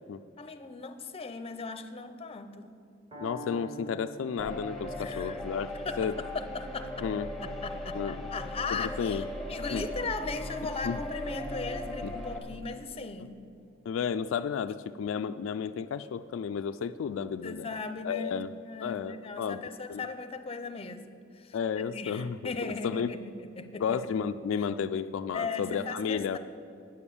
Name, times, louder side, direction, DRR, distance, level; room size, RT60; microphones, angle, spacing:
voice 1, 0.4-2.7 5.0-5.4 5.7-7.1 7.4-13.4 17.4-21.1 21.3-21.6 21.9-24.0 25.3-26.4, left 4 dB, 30° left, 9 dB, 0.6 m, -38 dB
Piano, 3.1-11.0, right 1 dB, 25° right, 2.2 m, -49 dB
voice 2, 3.2-5.7 6.0-6.1 7.0-7.3 7.9-8.3 8.7-9.2 9.7-9.9 10.8-11.0 12.0-12.1 13.9-17.7 18.0-18.5 18.8-19.6 19.9-20.1 21.5-23.1 23.7-26.4, left 7 dB, 75° left, 10 dB, 0.3 m, -32 dB
sound 1, 4.4-12.4, left 1 dB, ahead, 1.0 m, -38 dB
9.5 x 7.1 x 8.4 m, 2.5 s
head